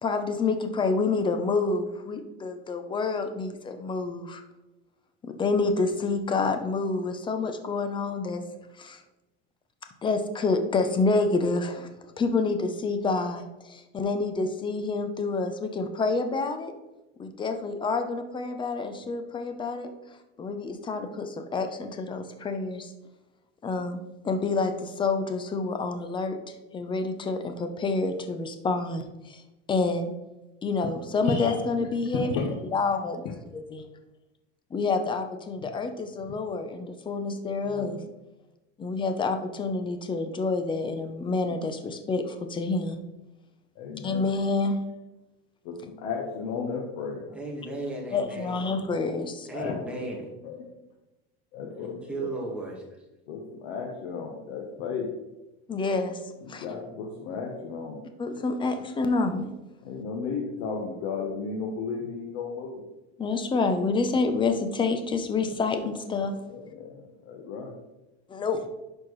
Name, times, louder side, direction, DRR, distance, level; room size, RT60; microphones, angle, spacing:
voice 1, 0.0-4.4 5.2-8.4 8.8-9.0 10.0-11.9 12.2-16.8 17.2-19.9 20.4-22.9 23.6-24.0 24.2-26.4 26.7-29.4 29.7-30.1 30.6-32.3 32.7-33.8 34.7-38.0 38.8-43.0 44.0-44.8 48.1-49.5 55.7-56.2 56.5-56.7 58.2-59.4 63.2-66.3 68.3-68.7, left 3 dB, 15° left, 7 dB, 0.6 m, -28 dB
voice 2, 31.3-32.5 37.6-38.1 43.8-44.3 45.6-47.4 49.5-49.8 50.4-50.6 51.5-51.9 52.2-52.3 53.3-55.1 56.4-58.0 59.8-62.9 66.5-67.8, left 5 dB, 80° left, 0 dB, 1.1 m, -34 dB
voice 3, 47.3-48.7 49.5-50.3 51.7-52.8, right 2 dB, 5° right, -3 dB, 1.5 m, -35 dB
10.5 x 4.4 x 3.1 m, 1.0 s
cardioid pair, 150°, 30 cm